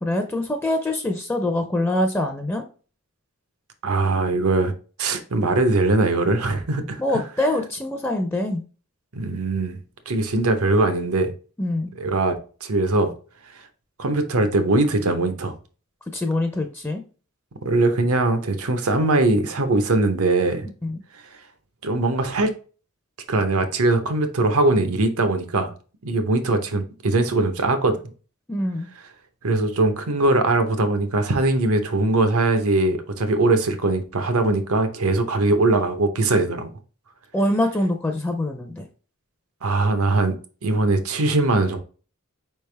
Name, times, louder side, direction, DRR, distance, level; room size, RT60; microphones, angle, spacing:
voice 1, 0.0-2.6 7.0-8.6 11.6-11.9 16.1-17.0 20.8-21.0 28.5-28.9 37.3-38.8, left 1 dB, 10° left, 0.4 m, -24 dB
voice 2, 3.8-4.7 5.0-7.0 9.1-9.8 10.1-11.3 12.0-13.1 14.0-15.5 17.6-20.7 21.8-22.5 23.3-25.7 26.0-28.0 29.4-36.7 39.6-40.4 40.6-41.8, right 2 dB, 85° right, 0.8 m, -21 dB
4.9 x 3.3 x 3.3 m
head